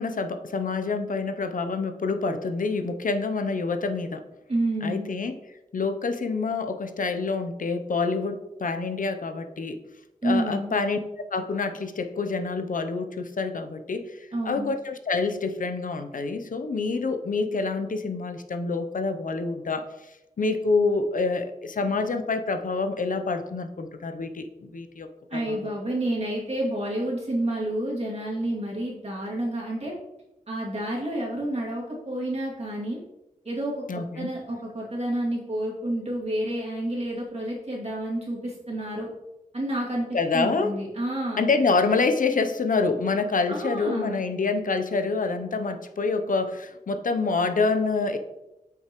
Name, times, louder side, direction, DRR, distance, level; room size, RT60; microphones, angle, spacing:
voice 1, 0.0-4.2 4.8-5.3 5.7-9.8 10.2-11.0 11.3-19.9 20.4-25.7 33.9-34.3 40.1-40.7 41.4-48.2, left 4 dB, 70° left, 8 dB, 0.6 m, -27 dB
voice 2, 4.5-5.1 10.2-10.8 14.3-14.7 25.3-29.9 30.5-33.0 33.4-33.8 34.1-39.1 39.5-40.1 40.3-41.5 43.5-44.2, right 1 dB, 50° right, -4 dB, 2.4 m, -29 dB
7.9 x 5.7 x 3.0 m, 0.95 s
wide cardioid pair, 85°, 14 cm